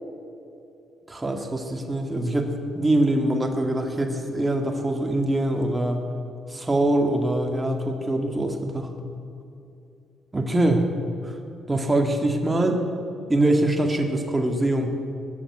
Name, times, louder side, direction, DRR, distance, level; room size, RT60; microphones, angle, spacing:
voice 1, 1.1-6.0 6.5-8.9 10.3-10.9 11.2-11.3 11.7-12.8 13.3-15.0, right 1 dB, 20° right, 4 dB, 1.9 m, -23 dB
18.5 x 7.2 x 9.8 m, 2.6 s
cardioid pair, 90°, 0 cm